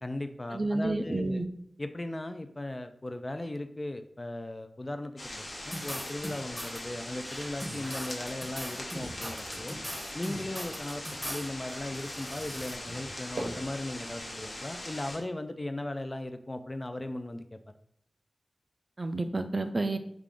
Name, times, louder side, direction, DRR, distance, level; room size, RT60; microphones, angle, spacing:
voice 1, 0.0-1.4 1.8-9.8 10.1-17.6, left 1 dB, 30° left, 8 dB, 0.3 m, -37 dB
voice 2, 0.5-1.5 19.0-20.0, right 2 dB, 45° right, 9 dB, 0.3 m, -30 dB
sound 1, 5.2-15.2, left 1 dB, 65° left, 0.9 m, -41 dB
sound 2, 5.7-6.8 7.2-11.5 11.8-12.8, equal, ahead, 0.8 m, -40 dB
sound 3, 7.5-9.7 10.1-13.9, right 1 dB, 85° right, 1.0 m, -46 dB
3.4 x 2.4 x 3.6 m, 0.69 s
cardioid pair, 45°, 0 cm